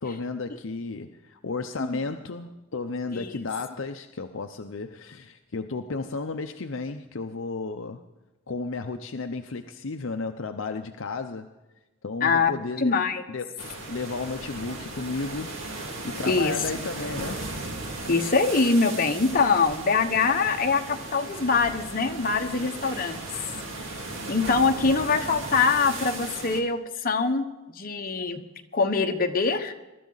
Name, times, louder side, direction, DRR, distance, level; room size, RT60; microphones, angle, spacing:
voice 1, 0.0-8.0 8.5-11.5 12.0-12.9 13.3-13.6 13.9-15.6 16.0-17.5, left 3 dB, 65° left, 6 dB, 0.7 m, -33 dB
voice 2, 12.2-12.5 12.8-13.2 16.3-16.5 18.1-23.2 24.3-28.4 28.7-29.7, left 4 dB, 45° left, 5 dB, 1.1 m, -23 dB
sound 1, 13.6-26.6, right 2 dB, 65° right, 2.2 m, -36 dB
22.5 x 12.5 x 4.0 m, 1.0 s
head